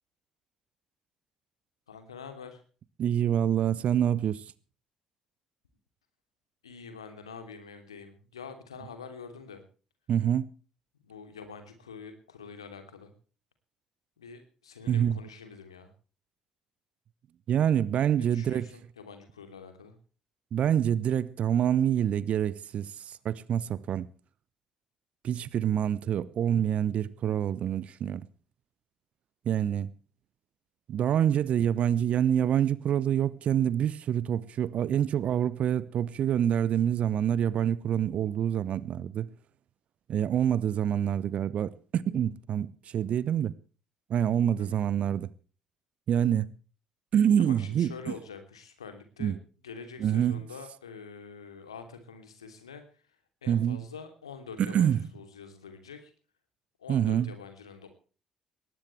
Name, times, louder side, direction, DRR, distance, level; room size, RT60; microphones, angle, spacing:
voice 1, 1.9-2.6 6.6-9.6 11.0-13.1 14.2-15.9 18.2-19.9 44.6-44.8 47.4-49.3 49.6-52.8 53.4-56.1 56.8-57.9, left 5 dB, 80° left, 2.9 m, -46 dB
voice 2, 3.0-4.4 10.1-10.5 14.9-15.2 17.5-18.7 20.5-24.1 25.2-28.3 29.5-29.9 30.9-39.3 40.1-42.7 42.9-43.5 44.1-45.3 46.1-46.5 47.1-48.1 49.2-49.4 50.0-50.4 53.5-53.9 54.6-55.1 56.9-57.3, right 9 dB, 50° right, 0.9 m, -26 dB
20.0 x 19.0 x 3.3 m
figure-of-eight pair, 50°, 3 cm